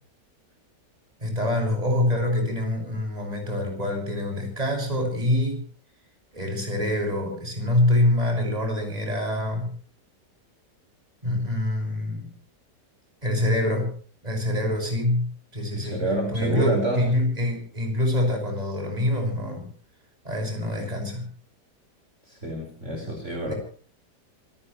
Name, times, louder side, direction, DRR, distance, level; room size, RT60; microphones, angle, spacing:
voice 1, 1.2-5.6 6.3-9.7 11.2-12.3 13.2-13.9 14.2-16.0 16.3-19.7 20.2-21.2 22.9-23.1 23.5-23.6, left 1 dB, 20° right, 1 dB, 6.3 m, -25 dB
voice 2, 15.7-17.3 22.3-23.5, right 1 dB, 40° right, 1 dB, 5.2 m, -28 dB
26.5 x 16.5 x 3.2 m, 0.43 s
omnidirectional pair, 1.8 m